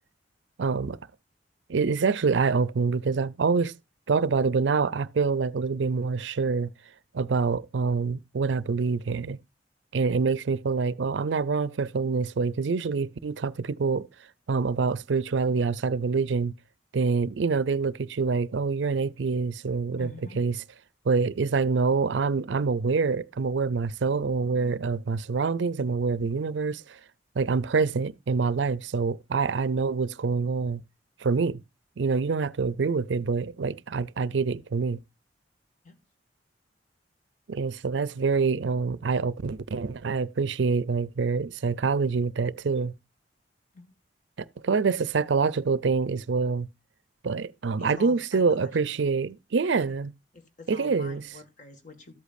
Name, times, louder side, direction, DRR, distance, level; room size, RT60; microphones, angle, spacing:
voice 1, 0.6-1.0 1.7-3.7 4.1-6.7 7.1-9.4 9.9-14.1 14.5-16.5 16.9-20.1 20.4-20.5 21.1-27.0 27.4-30.8 31.2-31.6 32.0-35.0 37.5-42.9 44.4-46.7 47.2-50.1 50.7-51.2, right 4 dB, 80° right, 0.5 m, -26 dB
voice 2, 20.0-20.5 35.8-36.0 43.7-43.9 47.8-48.8 49.8-50.1 50.3-52.1, left 3 dB, 45° left, 1.9 m, -46 dB
13.0 x 8.3 x 2.6 m
head